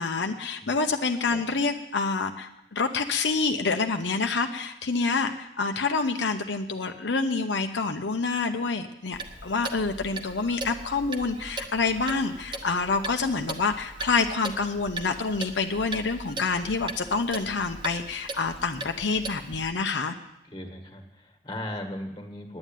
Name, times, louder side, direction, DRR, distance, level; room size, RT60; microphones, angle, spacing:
voice 1, 0.0-20.1, left 4 dB, 85° left, 5 dB, 0.8 m, -27 dB
Clock, 9.1-19.7, right 2 dB, 30° right, 1.0 m, -39 dB
voice 2, 20.4-22.6, left 1 dB, 25° left, 4 dB, 1.7 m, -38 dB
9.7 x 9.3 x 9.0 m, 0.87 s
head